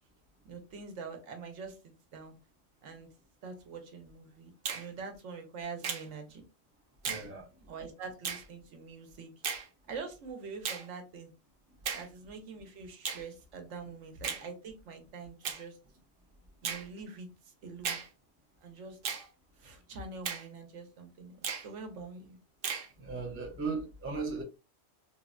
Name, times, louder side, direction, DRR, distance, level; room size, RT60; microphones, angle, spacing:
voice 1, 0.4-2.3 2.8-3.1 3.4-6.4 7.6-9.3 9.9-11.3 11.9-15.8 16.6-18.0 18.6-19.0 19.6-22.4, right 4 dB, 75° right, 1.0 m, -45 dB
Finger snapping, 4.6-4.9 5.8-6.1 7.0-7.3 8.2-8.4 9.4-9.7 10.6-10.9 11.8-12.1 13.0-13.2 14.2-14.4 15.4-15.6 16.6-16.9 17.8-18.1 19.0-19.3 20.2-20.5 21.4-21.7 22.6-22.9, right 6 dB, 60° right, 0.6 m, -35 dB
voice 2, 7.1-7.4 23.0-24.4, right 4 dB, 20° right, 0.4 m, -36 dB
3.2 x 2.0 x 2.4 m
omnidirectional pair, 1.3 m